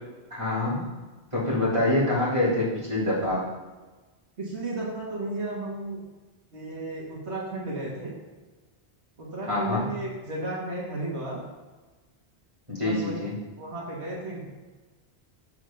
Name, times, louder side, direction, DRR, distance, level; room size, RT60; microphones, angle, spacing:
voice 1, 0.3-0.8 1.3-3.4 9.4-9.9 12.7-13.3, left 1 dB, 30° right, -8 dB, 2.7 m, -25 dB
voice 2, 4.4-6.0 6.5-8.1 9.2-11.4 12.8-13.2 13.6-14.4, right 2 dB, 85° right, -3 dB, 1.9 m, -33 dB
6.4 x 4.7 x 5.7 m, 1.2 s
omnidirectional pair, 1.1 m